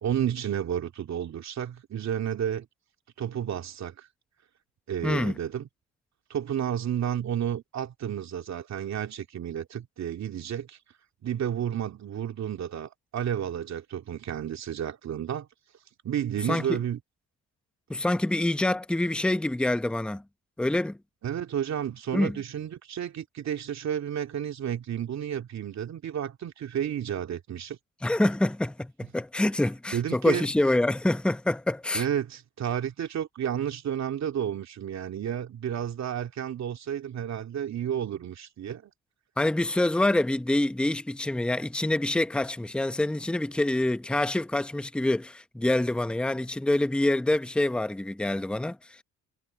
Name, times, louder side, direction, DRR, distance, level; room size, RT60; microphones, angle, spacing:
voice 1, 0.0-2.7 3.2-4.1 4.9-5.7 6.3-10.8 11.2-15.5 16.0-17.0 21.2-27.8 29.9-30.5 31.9-38.9, right 9 dB, 65° right, 2.7 m, -31 dB
voice 2, 5.0-5.3 16.5-16.8 17.9-20.2 20.6-21.0 22.1-22.4 28.0-32.0 39.4-49.0, left 1 dB, 5° left, 0.7 m, -26 dB
cardioid pair, 90°, 30 cm